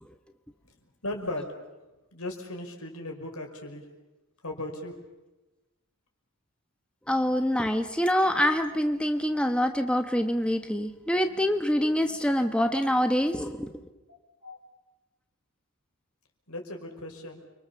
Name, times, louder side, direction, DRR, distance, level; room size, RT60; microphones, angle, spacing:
voice 1, 1.0-1.5 2.1-3.8 4.4-5.0 14.1-14.6 16.5-17.4, left 1 dB, 80° left, 3 dB, 5.3 m, -37 dB
voice 2, 7.1-13.7, equal, 5° left, 6 dB, 1.0 m, -25 dB
30.0 x 24.5 x 7.0 m, 1.1 s
head